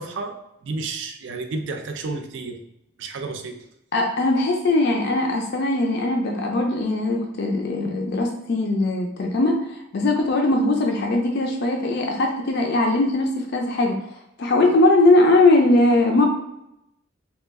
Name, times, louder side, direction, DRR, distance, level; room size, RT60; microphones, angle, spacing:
voice 1, 0.0-2.6 3.0-3.7, right 3 dB, 65° right, 5 dB, 0.4 m, -31 dB
voice 2, 3.9-14.0 14.4-16.3, left 2 dB, 55° left, 1 dB, 0.4 m, -20 dB
3.0 x 2.3 x 3.5 m, 0.84 s
head